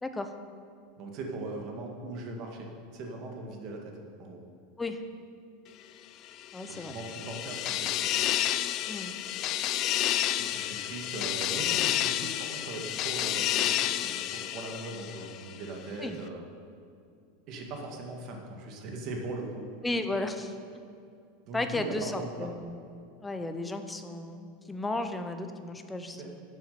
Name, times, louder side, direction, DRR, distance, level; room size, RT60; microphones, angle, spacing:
voice 1, 0.0-0.3 4.8-5.0 6.5-6.9 8.9-9.1 16.0-16.2 19.8-20.5 21.5-22.8 23.2-26.4, left 2 dB, 5° left, 7 dB, 0.7 m, -34 dB
voice 2, 1.0-3.9 4.2-4.4 6.7-8.2 10.4-16.5 17.5-19.6 21.5-22.5 26.2-26.3, right 2 dB, 40° right, 1 dB, 2.0 m, -39 dB
sound 1, 6.4-15.5, left 12 dB, 35° left, 0.4 m, -30 dB
12.0 x 7.9 x 6.8 m, 2.4 s
supercardioid pair, 165°, 0 cm